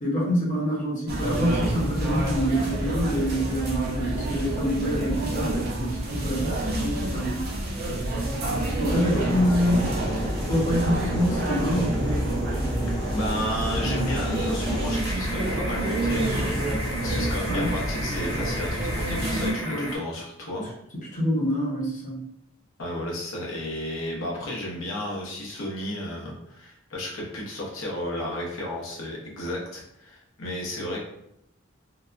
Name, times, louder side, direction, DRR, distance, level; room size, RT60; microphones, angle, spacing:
voice 1, 0.0-7.4 8.8-10.0 10.5-11.9 17.5-17.8 19.6-19.9 21.1-22.2, equal, 40° left, -4 dB, 0.8 m, -26 dB
sound 1, 1.1-19.5, right 1 dB, 50° right, 0.6 m, -28 dB
sound 2, 8.8-20.0, left 1 dB, 20° left, 0.4 m, -34 dB
voice 2, 13.1-20.7 22.8-31.0, left 1 dB, 90° left, -2 dB, 0.8 m, -33 dB
2.8 x 2.2 x 2.4 m, 0.81 s
head